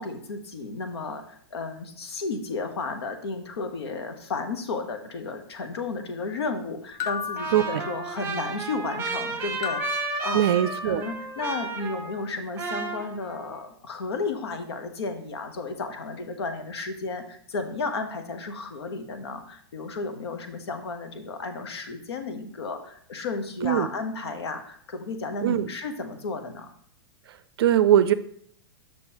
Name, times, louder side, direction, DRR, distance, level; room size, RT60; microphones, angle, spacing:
voice 1, 0.0-10.5 10.8-26.7, left 3 dB, 80° left, 7 dB, 1.1 m, -33 dB
sound 1, 7.0-8.5 9.6-11.1, left 8 dB, 25° left, 0.3 m, -35 dB
Trumpet, 7.4-12.3 12.6-13.6, right 4 dB, 15° right, 1.3 m, -33 dB
voice 2, 7.5-7.8 10.3-11.0 23.6-23.9 25.4-25.7 27.6-28.1, right 11 dB, 70° right, 13 dB, 0.4 m, -21 dB
6.9 x 6.0 x 2.9 m, 0.63 s
hypercardioid pair, 120°, 14 cm